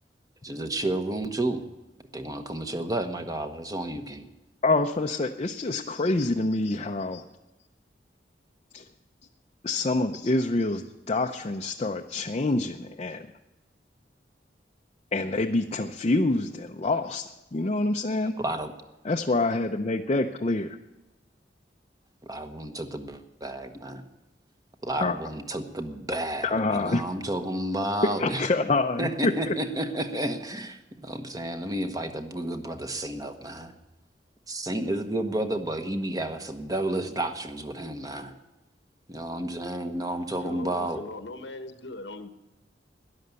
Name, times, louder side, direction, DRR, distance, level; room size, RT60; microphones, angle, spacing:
voice 1, 0.4-1.6 2.1-4.3 18.4-18.7 22.2-24.0 24.8-28.5 29.0-33.7 34.5-38.3 39.1-41.0, right 1 dB, 20° right, 1.1 m, -31 dB
voice 2, 4.6-7.2 8.7-8.8 9.6-13.3 15.1-18.4 19.0-20.8 25.0-25.2 26.4-27.0 28.2-29.5, left 2 dB, 35° left, 0.6 m, -26 dB
voice 3, 40.4-42.3, left 2 dB, 90° left, 1.3 m, -39 dB
13.0 x 10.5 x 8.1 m
head